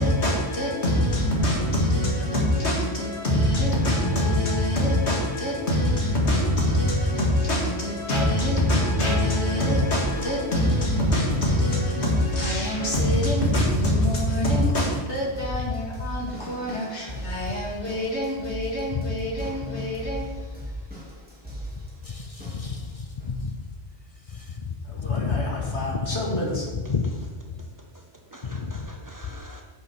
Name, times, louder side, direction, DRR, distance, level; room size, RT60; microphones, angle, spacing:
voice 1, 0.0-20.3 24.9-26.7, left 1 dB, 70° left, 2.4 m, -24 dB
sound 1, 9.6-22.8 23.2-23.6 24.4-24.5, equal, 10° right, 2.9 m, -37 dB
voice 2, 22.0-23.7 24.3-26.4 26.9-27.3 28.4-28.9, left 5 dB, 45° left, 0.5 m, -30 dB
voice 3, 26.8-27.2 27.6-29.6, right 1 dB, 30° right, 0.4 m, -47 dB
10.5 x 6.2 x 4.7 m
omnidirectional pair, 1.2 m